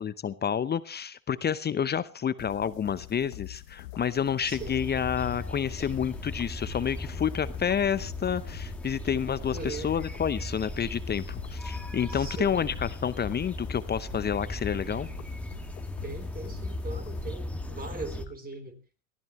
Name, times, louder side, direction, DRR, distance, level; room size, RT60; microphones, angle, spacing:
voice 1, 0.0-15.1, left 8 dB, 20° left, 16 dB, 0.7 m, -29 dB
sound 1, 2.4-17.8, left 19 dB, 70° left, 1.3 m, -45 dB
voice 2, 4.4-4.8 9.5-9.9 12.1-12.6 16.0-18.8, right 3 dB, 20° right, 9 dB, 3.7 m, -40 dB
sound 2, 4.5-18.2, left 1 dB, 5° left, 2.0 m, -38 dB
22.5 x 15.0 x 3.1 m, 0.34 s
hypercardioid pair, 80°, 45 cm